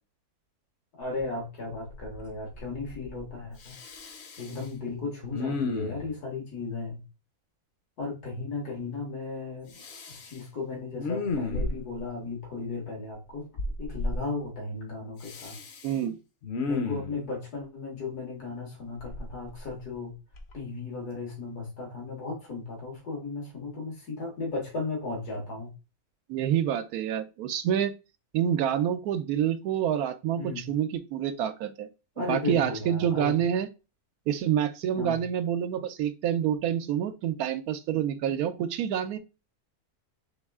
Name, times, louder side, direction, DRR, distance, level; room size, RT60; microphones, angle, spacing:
voice 1, 1.0-3.8 4.4-7.0 8.0-9.7 10.1-13.5 13.8-15.5 16.7-20.1 20.5-25.7 30.4-30.7 32.2-33.4 35.0-35.2, left 3 dB, 85° left, 2.2 m, -35 dB
Respiratory sounds, 1.2-1.3 1.7-2.3 2.5-3.3 3.6-4.6 5.3-6.1 9.7-10.4 10.9-12.0 13.6-14.2 15.2-15.9 16.4-17.2 19.0-19.9 20.3-20.5, left 3 dB, 55° left, 0.9 m, -33 dB
voice 2, 15.8-16.2 26.3-27.9 28.3-31.9 32.2-33.7 34.3-39.2, right 9 dB, 80° right, 1.0 m, -27 dB
4.2 x 3.1 x 3.5 m
omnidirectional pair, 1.6 m